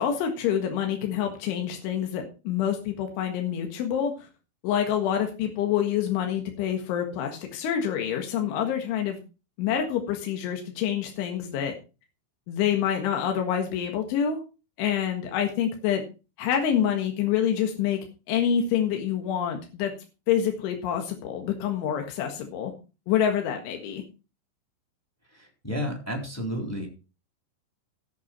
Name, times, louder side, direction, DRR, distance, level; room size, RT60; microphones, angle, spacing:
voice 1, 0.0-4.1 4.6-9.2 9.6-11.7 12.5-14.4 14.8-16.0 16.4-18.0 18.3-19.9 20.3-22.7 23.1-24.0, left 9 dB, 80° left, 3 dB, 4.1 m, -27 dB
voice 2, 25.4-26.9, equal, 5° left, 2 dB, 2.9 m, -31 dB
14.5 x 8.3 x 4.4 m, 0.32 s
omnidirectional pair, 5.4 m